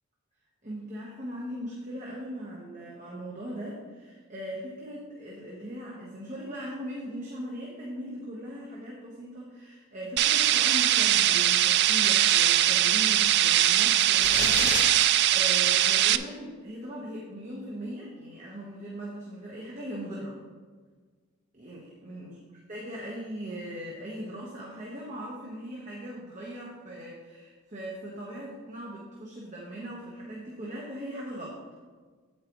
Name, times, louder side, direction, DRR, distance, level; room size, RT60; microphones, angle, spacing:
voice 1, 0.6-20.4 21.5-22.3 22.7-31.6, right 1 dB, 35° right, -4 dB, 1.3 m, -39 dB
sound 1, 10.2-16.2, right 12 dB, 55° right, 0.3 m, -22 dB
sound 2, 14.2-14.9, left 4 dB, 65° left, 1.7 m, -30 dB
8.7 x 8.6 x 3.1 m, 1.5 s
head